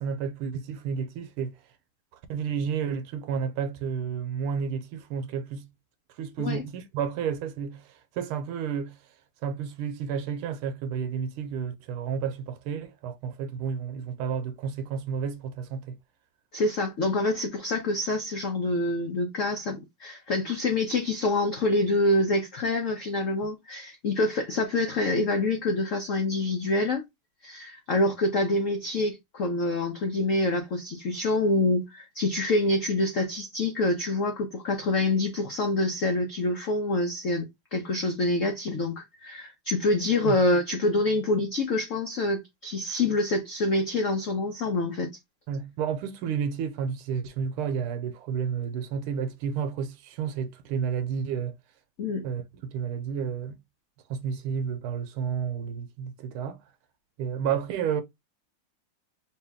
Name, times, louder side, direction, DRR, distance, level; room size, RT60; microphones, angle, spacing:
voice 1, 0.0-1.6 2.3-5.7 6.2-7.9 8.2-9.0 9.4-16.0 40.2-40.4 45.5-51.5 52.2-53.6 54.1-56.6 57.2-58.0, right 7 dB, 80° right, 1.5 m, -31 dB
voice 2, 16.5-27.0 27.4-45.1 52.0-52.2, left 2 dB, 85° left, 0.6 m, -26 dB
3.3 x 2.9 x 3.4 m
omnidirectional pair, 2.4 m